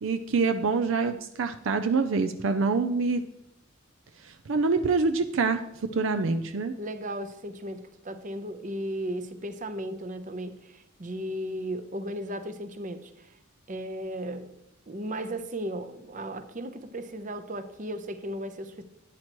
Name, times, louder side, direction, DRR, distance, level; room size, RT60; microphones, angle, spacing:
voice 1, 0.0-3.2 4.2-5.6 5.9-6.7, right 4 dB, 65° right, 8 dB, 0.5 m, -26 dB
voice 2, 6.8-13.4 13.7-14.5 14.9-18.8, right 1 dB, 40° right, 10 dB, 0.8 m, -35 dB
11.5 x 8.9 x 3.1 m, 0.82 s
head